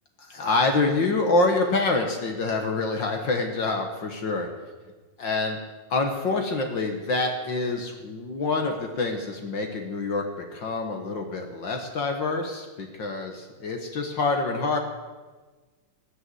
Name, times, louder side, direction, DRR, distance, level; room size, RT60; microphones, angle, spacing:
voice 1, 0.2-4.5 5.2-5.6 5.9-10.2 10.5-14.8, left 3 dB, 50° left, 3 dB, 1.5 m, -26 dB
19.5 x 6.9 x 7.8 m, 1.3 s
omnidirectional pair, 3.6 m